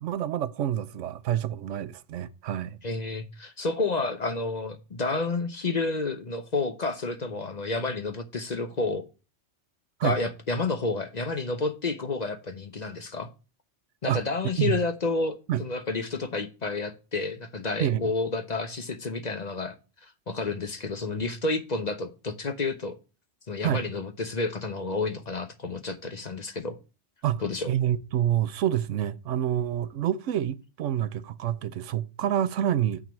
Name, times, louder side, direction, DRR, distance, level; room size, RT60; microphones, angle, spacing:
voice 1, 0.0-2.8 10.0-10.2 14.1-14.2 14.6-14.7 15.5-15.6 17.8-18.0 23.6-23.8 27.2-33.0, right 11 dB, 80° right, 1.0 m, -27 dB
voice 2, 2.8-9.0 10.0-13.3 14.0-19.7 20.0-22.9 23.5-26.8 27.4-27.7, left 3 dB, 40° left, 0.9 m, -30 dB
9.1 x 3.8 x 7.1 m
omnidirectional pair, 1.2 m